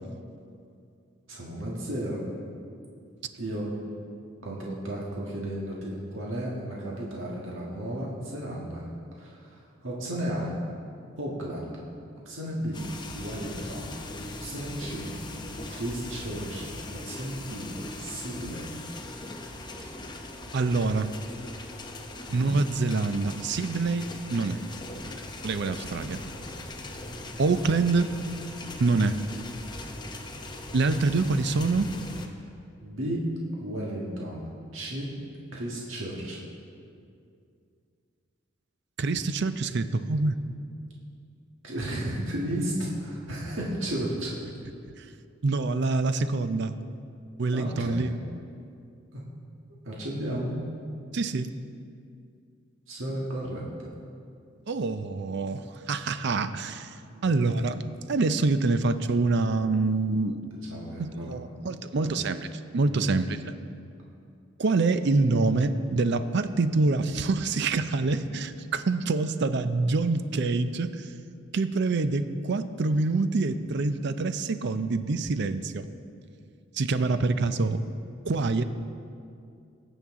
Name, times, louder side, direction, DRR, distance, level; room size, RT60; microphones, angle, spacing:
voice 1, 1.3-2.2 3.4-3.7 4.4-10.5 11.2-11.8 12.2-12.8 13.1-13.9 14.4-15.1 15.7-16.7 17.0-17.7 18.0-18.7 22.3-22.5 32.8-33.3 33.6-35.1 35.5-36.4 41.6-44.3 47.5-48.0 49.1-49.2 49.8-50.6 52.9-53.9 57.1-57.3 60.4-61.4 61.7-62.1 62.9-63.1, right 1 dB, 85° right, -4 dB, 1.5 m, -34 dB
sound 1, 12.7-32.3, left 2 dB, 25° left, 0.8 m, -40 dB
voice 2, 20.5-21.1 22.3-24.6 25.4-26.2 27.4-28.1 28.8-29.2 30.7-31.9 39.0-40.4 45.0-45.1 45.4-46.7 47.4-48.1 51.1-51.5 54.7-56.9 57.2-60.4 61.0-62.4 62.7-63.5 64.6-71.1 71.5-75.9 76.7-77.8 78.2-78.6, right 3 dB, 60° right, 11 dB, 0.5 m, -26 dB
18.5 x 7.2 x 3.7 m, 2.4 s
head